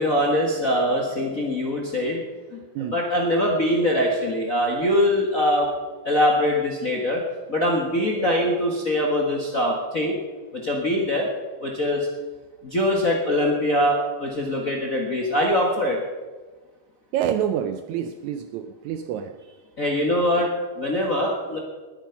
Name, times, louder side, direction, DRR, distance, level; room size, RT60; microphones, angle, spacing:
voice 1, 0.0-2.2 2.5-2.6 2.9-5.7 6.0-7.2 7.5-10.1 10.5-11.3 11.6-12.1 12.6-16.0 19.8-20.5 20.8-21.6, left 1 dB, 40° left, -1 dB, 1.1 m, -22 dB
voice 2, 17.1-19.4, right 9 dB, 80° right, 9 dB, 1.7 m, -27 dB
20.0 x 8.7 x 5.8 m, 1.4 s
omnidirectional pair, 3.8 m